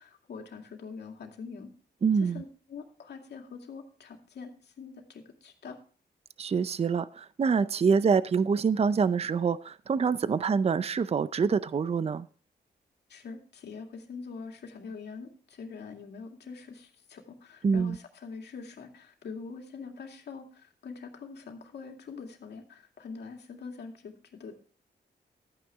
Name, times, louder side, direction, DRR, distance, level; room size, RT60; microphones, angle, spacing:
voice 1, 0.0-1.7 2.2-5.8 13.1-24.6, left 5 dB, 75° left, 2.3 m, -44 dB
voice 2, 2.0-2.4 6.4-12.3 17.6-18.0, right 5 dB, 35° right, 0.5 m, -26 dB
13.5 x 9.2 x 3.6 m
cardioid pair, 85°, 18 cm